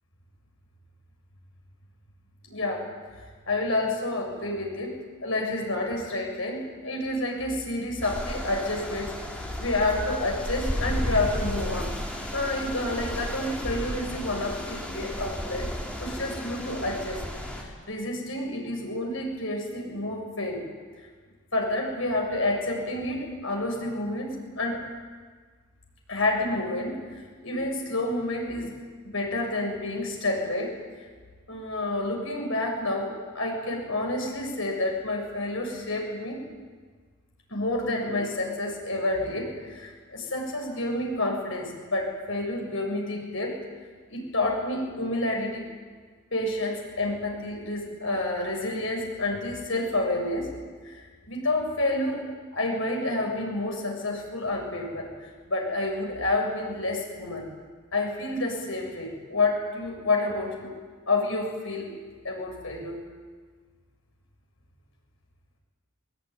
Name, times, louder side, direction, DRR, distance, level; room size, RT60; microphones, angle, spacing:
voice 1, 2.4-2.9 3.5-11.9 12.3-15.7 16.0-17.2 17.9-20.6 21.5-24.8 26.1-30.8 31.5-36.5 37.5-43.6 44.1-45.7 46.3-50.5 50.8-52.2 52.5-57.4 57.9-60.7 61.1-61.9 62.2-63.0, left 2 dB, 65° left, 1 dB, 7.2 m, -29 dB
sound 1, 8.0-17.6, equal, 5° left, 3.6 m, -33 dB
22.5 x 22.0 x 9.8 m, 1.5 s
head